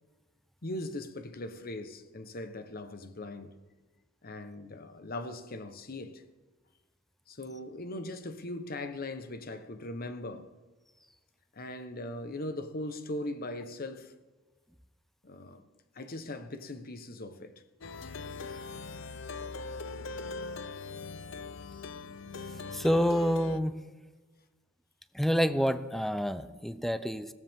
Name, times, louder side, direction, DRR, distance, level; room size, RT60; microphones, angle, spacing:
voice 1, 0.6-3.5 4.2-6.2 7.3-10.5 11.5-14.1 15.2-15.7 15.9-17.5, left 1 dB, 50° left, 1.1 m, -40 dB
Plucked string instrument, 17.8-23.6, left 3 dB, 65° left, 0.7 m, -41 dB
voice 2, 22.7-23.7 25.1-27.3, equal, ahead, 0.6 m, -28 dB
20.5 x 16.0 x 3.7 m
head